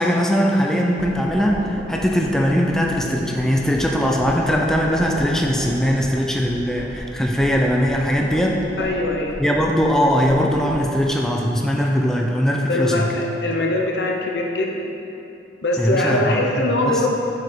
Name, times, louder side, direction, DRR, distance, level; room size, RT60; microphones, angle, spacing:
voice 1, 0.0-8.6 9.4-13.2 15.8-17.1, equal, 5° left, -1 dB, 0.4 m, -20 dB
sound 1, 1.0-11.0, right 1 dB, 65° right, 0.9 m, -35 dB
voice 2, 8.8-9.4 12.7-14.8 15.6-17.1, left 2 dB, 70° left, 0 dB, 0.8 m, -22 dB
6.7 x 5.1 x 4.3 m, 2.9 s
head